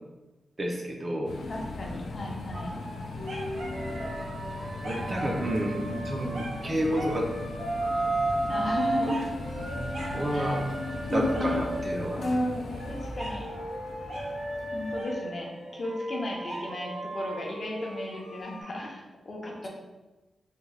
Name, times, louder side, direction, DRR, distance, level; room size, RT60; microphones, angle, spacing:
voice 1, 0.6-1.3 4.8-7.3 9.0-9.1 10.1-10.7 11.1-12.2, right 1 dB, 30° right, 0 dB, 0.4 m, -30 dB
sound 1, 1.3-15.0, left 2 dB, 85° left, 0.4 m, -38 dB
voice 2, 1.5-2.9 8.5-9.2 10.3-10.6 11.1-11.6 12.1-13.5 14.7-19.7, left 1 dB, 35° left, -1 dB, 0.5 m, -34 dB
sound 2, 2.5-11.8 12.7-18.6, right 1 dB, 80° right, 0.5 m, -40 dB
sound 3, 3.2-6.7 7.2-12.4 12.8-18.4, right 2 dB, 50° right, 0.9 m, -35 dB
3.5 x 2.2 x 3.2 m, 1.1 s
wide cardioid pair, 175°, 0 cm